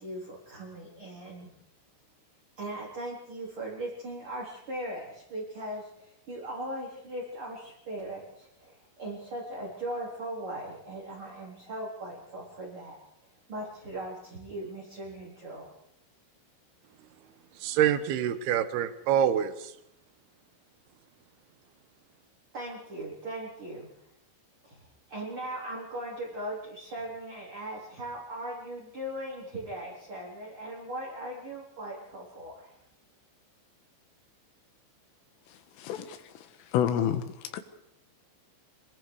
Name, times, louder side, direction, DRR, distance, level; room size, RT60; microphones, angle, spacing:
voice 1, 0.0-1.5 2.6-13.0 13.5-15.7 22.5-23.9 24.6-32.7, right 1 dB, 30° right, -4 dB, 4.3 m, -39 dB
voice 2, 17.6-19.7, right 9 dB, 65° right, 11 dB, 2.8 m, -26 dB
voice 3, 35.8-36.2 36.7-37.6, left 9 dB, 85° left, 9 dB, 4.1 m, -28 dB
26.5 x 22.5 x 4.9 m, 0.79 s
omnidirectional pair, 5.7 m